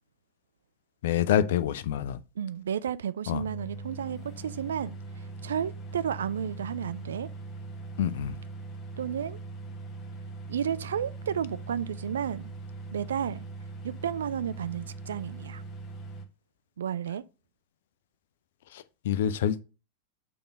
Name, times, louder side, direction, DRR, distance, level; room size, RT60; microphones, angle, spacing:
voice 1, 1.0-2.2 3.3-3.4 8.0-8.4 18.7-19.6, left 10 dB, 55° left, 0.5 m, -27 dB
voice 2, 2.4-7.3 9.0-9.4 10.5-12.5 12.9-13.5 13.8-15.6 16.8-17.2, right 8 dB, 65° right, 0.4 m, -32 dB
sound 1, 3.4-16.3, right 3 dB, 30° left, 1.2 m, -41 dB
6.8 x 3.6 x 5.3 m
figure-of-eight pair, 90°, 0 cm